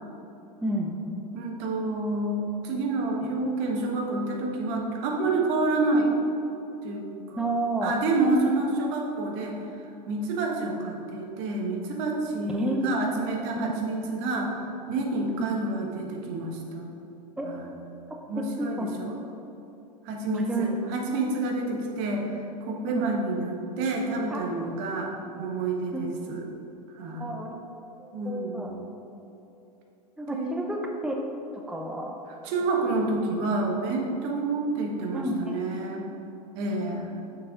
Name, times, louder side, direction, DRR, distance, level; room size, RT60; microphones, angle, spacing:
voice 1, 0.6-1.2 7.4-7.9 12.5-13.0 13.6-13.7 15.4-15.5 17.4-17.5 18.6-18.9 20.3-20.7 22.9-23.0 24.3-24.5 25.9-26.1 27.0-27.6 28.0-28.7 30.2-31.2 31.5-32.2 35.1-35.4, right 1 dB, 5° right, 1 dB, 0.6 m, -30 dB
voice 2, 1.3-6.1 6.8-7.5 7.8-9.6 10.1-16.9 17.4-17.7 18.3-19.2 20.0-26.4 26.9-27.3 28.1-28.9 30.3-30.5 32.4-36.1 36.5-37.1, right 2 dB, 50° right, 1 dB, 1.4 m, -28 dB
6.6 x 6.5 x 3.8 m, 2.8 s
hypercardioid pair, 95°, 21 cm